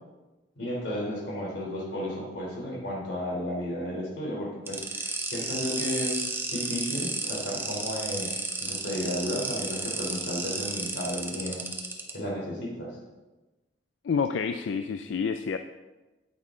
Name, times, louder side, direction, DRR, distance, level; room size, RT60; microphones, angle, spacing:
voice 1, 0.6-8.3 8.6-11.6 12.1-13.0, left 1 dB, 70° left, -3 dB, 3.3 m, -33 dB
sound 1, 4.7-12.1, right 3 dB, 15° right, 1.0 m, -32 dB
voice 2, 14.0-15.6, left 5 dB, 85° left, 9 dB, 0.4 m, -28 dB
9.4 x 8.7 x 3.7 m, 1.1 s
head